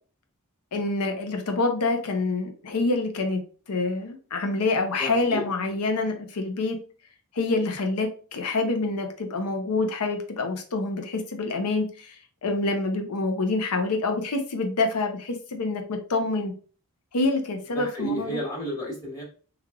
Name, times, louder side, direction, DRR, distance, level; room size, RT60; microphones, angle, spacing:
voice 1, 0.7-3.4 3.7-6.8 7.3-12.2 12.4-16.5 17.1-18.4, left 3 dB, 85° left, 4 dB, 0.6 m, -26 dB
voice 2, 5.0-5.8 17.7-19.2, right 1 dB, 15° left, -4 dB, 1.2 m, -32 dB
3.2 x 2.4 x 2.3 m, 0.40 s
head